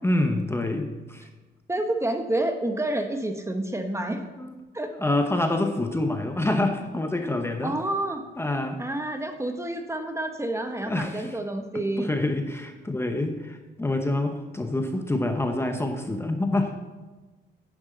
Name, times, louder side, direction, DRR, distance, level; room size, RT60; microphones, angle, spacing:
voice 1, 0.0-1.3 4.4-4.5 4.9-7.8 8.4-8.8 10.9-11.4 11.7-16.7, left 2 dB, 10° left, 5 dB, 1.0 m, -27 dB
voice 2, 1.7-4.2 4.7-4.9 7.6-8.2 8.8-12.1, right 1 dB, 15° right, 5 dB, 1.1 m, -28 dB
10.0 x 9.7 x 4.0 m, 1.2 s
cardioid pair, 90°, 20 cm